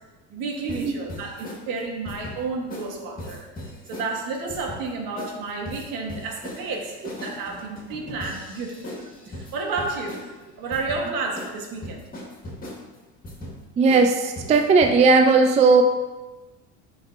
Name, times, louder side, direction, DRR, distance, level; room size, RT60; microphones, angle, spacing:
voice 1, 0.3-12.0, right 3 dB, 65° right, 0 dB, 1.5 m, -31 dB
sound 1, 0.7-1.6 2.1-2.4 2.7-2.9 3.2-4.1 4.5-4.9 5.2-5.4 5.7-10.3 10.7-11.0 11.4-11.5 11.8-12.8 13.2-13.6 13.9-14.1 14.4-14.9, left 1 dB, 25° left, 1.7 m, -38 dB
voice 2, 13.8-15.8, right 4 dB, 20° right, 5 dB, 0.3 m, -17 dB
10.0 x 3.5 x 2.6 m, 1.2 s
supercardioid pair, 105°, 37 cm